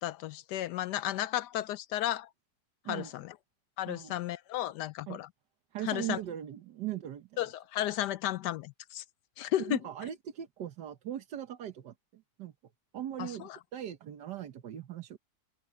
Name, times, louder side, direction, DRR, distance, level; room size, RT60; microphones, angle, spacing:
voice 1, 0.0-2.3 2.9-3.3 3.8-5.3 5.9-6.2 7.4-9.0 9.4-9.8 13.2-13.6, left 13 dB, 80° left, 1.3 m, -33 dB
voice 2, 5.7-7.4 9.6-12.5 12.9-15.2, right 11 dB, 85° right, 1.7 m, -39 dB
omnidirectional pair, 1.8 m